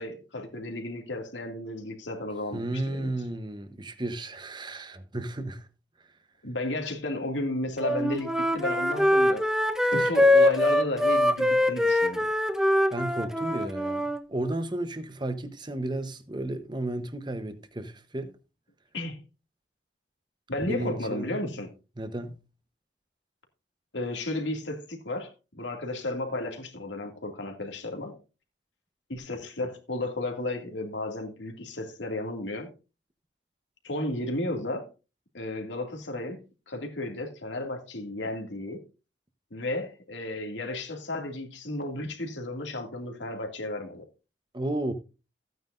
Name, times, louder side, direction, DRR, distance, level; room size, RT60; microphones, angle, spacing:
voice 1, 0.0-3.1 6.4-9.5 9.8-12.3 18.9-19.2 20.5-21.7 23.9-28.2 29.1-32.7 33.8-34.9 35.3-36.4 36.7-38.8 39.5-44.0, left 1 dB, 85° left, 2.4 m, -33 dB
voice 2, 2.5-5.7 9.9-10.1 12.9-18.3 20.6-21.5 22.0-22.4 44.5-44.9, right 1 dB, 25° right, 1.0 m, -33 dB
Wind instrument woodwind instrument, 7.8-14.2, left 1 dB, 5° right, 0.7 m, -23 dB
15.0 x 9.3 x 2.6 m
head